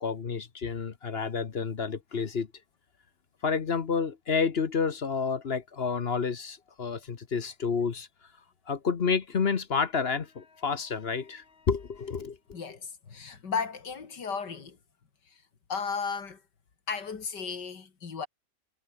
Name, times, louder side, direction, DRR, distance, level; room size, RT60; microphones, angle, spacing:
voice 1, 0.0-2.5 3.4-8.1 8.7-12.8, left 5 dB, 40° left, 1.2 m, -30 dB
voice 2, 12.5-14.8 15.7-16.4 16.9-18.3, left 5 dB, 85° left, 3.1 m, -34 dB
omnidirectional pair, 1.8 m